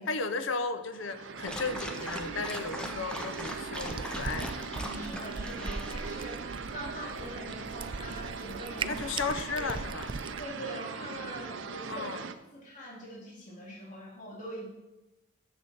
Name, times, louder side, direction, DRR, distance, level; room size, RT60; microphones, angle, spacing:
voice 1, 0.0-4.7 8.9-10.1 11.9-12.3, left 4 dB, 75° left, 11 dB, 0.7 m, -35 dB
sound 1, 0.9-12.3, right 5 dB, 75° right, 0.6 m, -40 dB
Dog, 1.4-6.4, equal, 5° left, 0.7 m, -41 dB
Cat, 1.5-10.5, right 4 dB, 25° right, 0.3 m, -41 dB
voice 2, 4.7-9.0 9.5-9.7 10.4-12.1 12.5-14.7, equal, 40° left, -5 dB, 2.5 m, -43 dB
7.4 x 6.7 x 6.7 m, 1.0 s
head